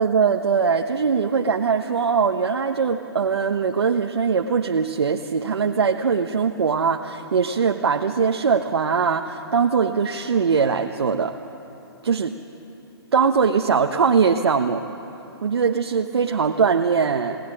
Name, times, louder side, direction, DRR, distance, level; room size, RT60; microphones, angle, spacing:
voice 1, 0.0-11.3 12.0-12.4 13.1-14.8 15.4-17.4, right 6 dB, 80° right, 3 dB, 1.2 m, -21 dB
25.0 x 18.0 x 10.0 m, 2.9 s
hypercardioid pair, 145°, 13 cm